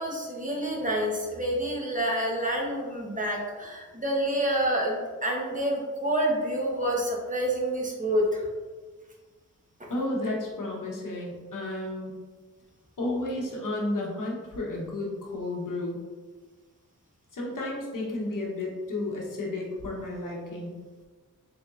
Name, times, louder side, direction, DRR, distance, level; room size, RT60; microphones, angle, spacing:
voice 1, 0.0-8.4 9.8-9.9, right 1 dB, 25° right, -2 dB, 0.9 m, -28 dB
voice 2, 9.9-12.1 13.0-16.0 17.3-20.8, left 2 dB, 80° left, -3 dB, 1.0 m, -32 dB
3.9 x 3.4 x 2.4 m, 1.4 s
wide cardioid pair, 60°, 31 cm